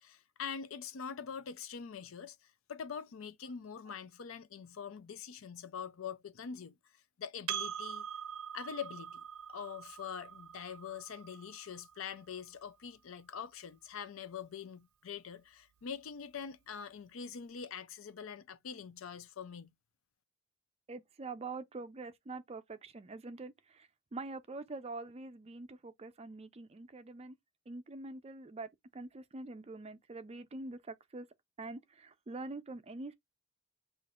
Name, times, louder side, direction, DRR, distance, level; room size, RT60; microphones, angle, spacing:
voice 1, 0.0-8.1 8.5-9.2 9.5-19.7, left 7 dB, 70° left, 0.5 m, -44 dB
Percussion, 7.5-12.3, right 9 dB, 85° right, 0.5 m, -43 dB
voice 2, 20.9-27.4 27.7-31.3 31.6-33.1, right 3 dB, 30° right, 0.4 m, -45 dB
5.8 x 2.5 x 2.4 m
head